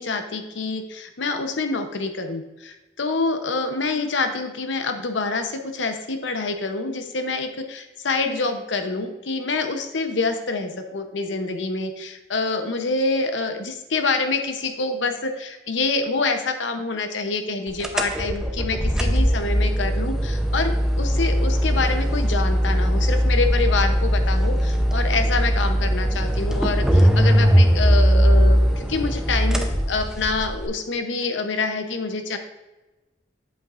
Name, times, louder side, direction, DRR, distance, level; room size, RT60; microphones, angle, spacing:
voice 1, 0.0-32.4, left 3 dB, 75° left, 6 dB, 0.8 m, -26 dB
sound 1, 17.8-30.7, equal, 5° right, 0.6 m, -20 dB
8.1 x 8.0 x 2.5 m, 1.1 s
head